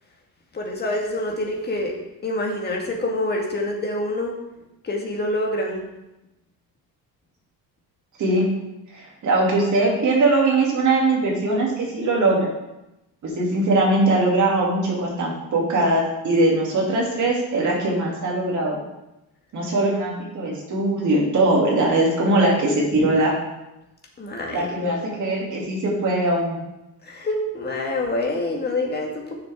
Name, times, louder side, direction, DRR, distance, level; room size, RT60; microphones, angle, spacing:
voice 1, 0.5-1.9 2.2-4.3 4.8-5.8 24.2-24.9 27.1-29.4, left 1 dB, 25° left, 0 dB, 1.7 m, -26 dB
voice 2, 8.9-12.5 13.2-18.8 19.5-23.3 24.5-26.6, right 2 dB, 50° right, -3 dB, 2.8 m, -21 dB
8.8 x 6.6 x 3.6 m, 0.94 s
cardioid pair, 130°, 37 cm